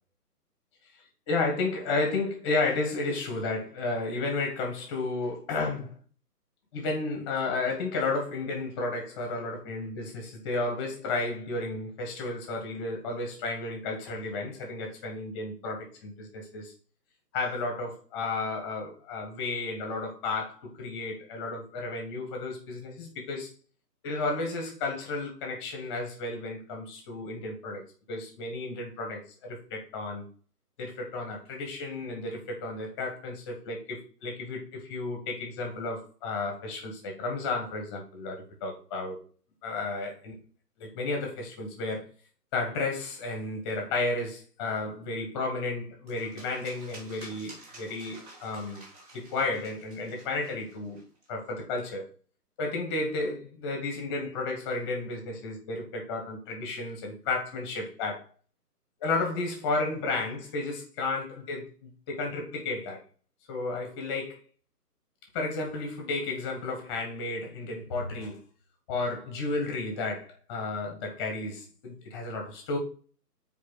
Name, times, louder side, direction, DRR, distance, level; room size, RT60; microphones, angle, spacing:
voice 1, 0.9-6.0 6.7-16.7 17.3-23.5 24.0-27.8 28.1-30.3 30.8-39.2 39.6-40.4 40.8-42.1 42.5-48.9 49.1-51.0 51.3-52.1 52.6-58.3 59.0-63.0 63.5-64.4 65.3-68.4 68.9-72.8, left 3 dB, 15° left, 1.6 m, -32 dB
sound 1, 46.1-51.3, right 2 dB, 25° right, 2.3 m, -50 dB
6.5 x 4.8 x 6.3 m
hypercardioid pair, 160°, 47 cm